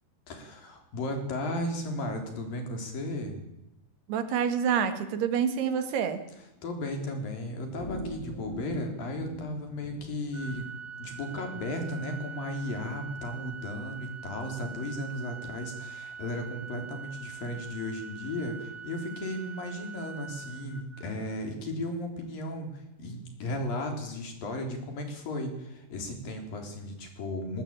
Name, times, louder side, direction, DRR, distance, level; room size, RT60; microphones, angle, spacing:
voice 1, 0.3-3.4 6.6-10.7 11.0-27.6, left 1 dB, 60° left, 5 dB, 5.2 m, -35 dB
voice 2, 4.1-6.2, right 7 dB, 75° right, 9 dB, 3.8 m, -27 dB
sound 1, 7.8-10.6, equal, 55° right, 5.6 m, -42 dB
Organ, 10.3-21.4, right 6 dB, 35° right, 2.3 m, -43 dB
20.5 x 18.5 x 8.9 m, 0.89 s
omnidirectional pair, 4.7 m